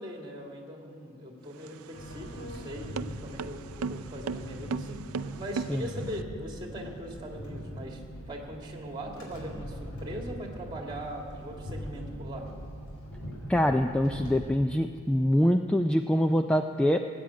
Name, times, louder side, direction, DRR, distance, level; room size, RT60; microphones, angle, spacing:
voice 1, 0.0-5.0 5.4-12.5, equal, 20° right, 1 dB, 2.2 m, -40 dB
sound 1, 1.5-6.2, right 5 dB, 80° right, 0.4 m, -37 dB
sound 2, 1.9-14.4, equal, 80° left, 4.2 m, -42 dB
voice 2, 13.5-17.0, equal, 5° left, 6 dB, 0.3 m, -24 dB
18.5 x 9.1 x 8.5 m, 2.2 s
head